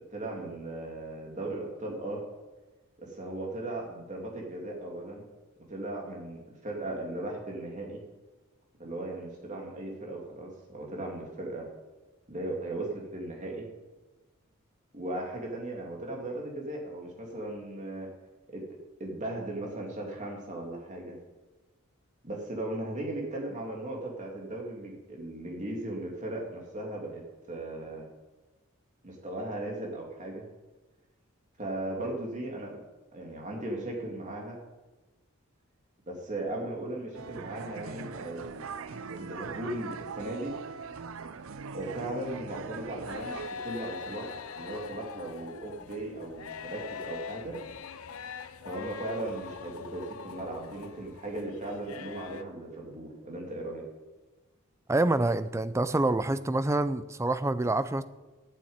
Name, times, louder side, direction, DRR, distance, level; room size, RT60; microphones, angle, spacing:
voice 1, 0.1-2.2 3.0-5.2 5.7-8.0 8.8-11.7 12.3-13.7 14.9-18.1 18.5-18.6 19.0-21.1 22.2-28.1 29.0-30.4 31.6-32.8 33.1-34.6 36.1-38.6 39.1-40.5 41.7-47.6 48.6-53.8, right 1 dB, 35° right, -1 dB, 2.5 m, -37 dB
sound 1, 37.1-43.5, right 5 dB, 65° right, 0.5 m, -41 dB
sound 2, 43.1-52.4, left 6 dB, 80° left, 0.7 m, -42 dB
voice 2, 54.9-58.0, right 2 dB, 15° right, 14 dB, 0.4 m, -27 dB
8.7 x 7.5 x 8.8 m, 1.2 s
head